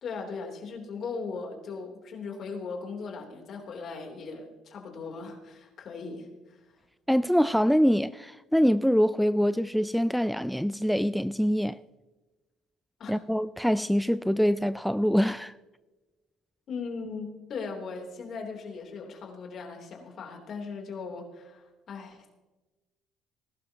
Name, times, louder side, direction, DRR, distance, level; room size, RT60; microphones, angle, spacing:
voice 1, 0.0-6.6 13.0-13.1 16.7-22.3, left 4 dB, 55° left, 3.3 m, -38 dB
voice 2, 7.1-11.8 13.1-15.5, equal, ahead, 0.3 m, -24 dB
19.5 x 12.0 x 2.9 m
supercardioid pair, 90°, 0 cm